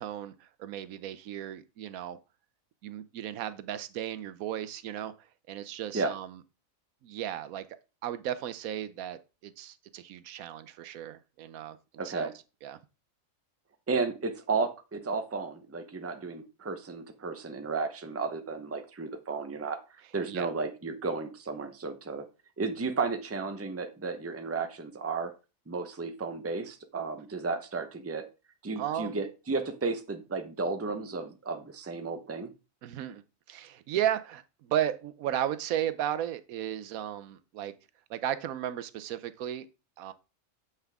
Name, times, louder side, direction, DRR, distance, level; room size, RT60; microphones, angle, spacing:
voice 1, 0.0-2.2 2.8-6.4 7.0-7.7 8.0-11.8 12.0-12.3 12.6-12.8 20.3-20.5 28.8-29.2 32.8-33.2 33.5-37.7 38.1-39.7 40.0-40.1, right 11 dB, 90° right, 1.1 m, -35 dB
voice 2, 12.0-12.3 13.9-19.8 20.1-22.2 22.6-25.3 25.7-28.3 28.6-32.5, right 4 dB, 15° right, 0.6 m, -33 dB
7.9 x 5.8 x 3.5 m
omnidirectional pair, 1.4 m